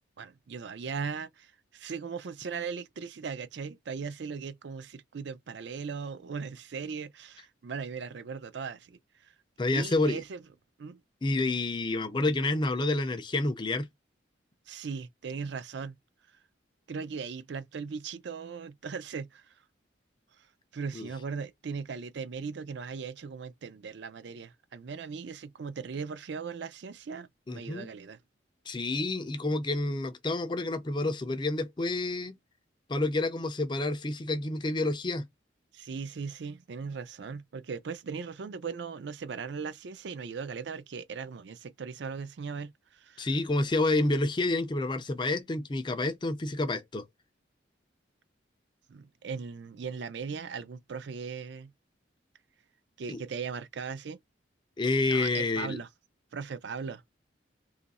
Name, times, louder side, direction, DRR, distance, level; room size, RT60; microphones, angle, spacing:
voice 1, 0.2-9.3 9.7-10.4 10.8-11.0 14.7-16.0 16.9-19.5 20.4-20.5 20.7-28.2 35.7-43.3 48.9-51.7 53.0-54.2 55.1-55.9 56.3-57.0, right 5 dB, 65° right, 0.4 m, -38 dB
voice 2, 9.6-10.2 11.2-13.9 20.9-21.1 27.5-27.9 28.7-32.3 32.9-35.3 43.2-47.1 53.1-53.2 54.8-55.8, left 2 dB, 25° left, 0.4 m, -29 dB
2.9 x 2.4 x 4.0 m
head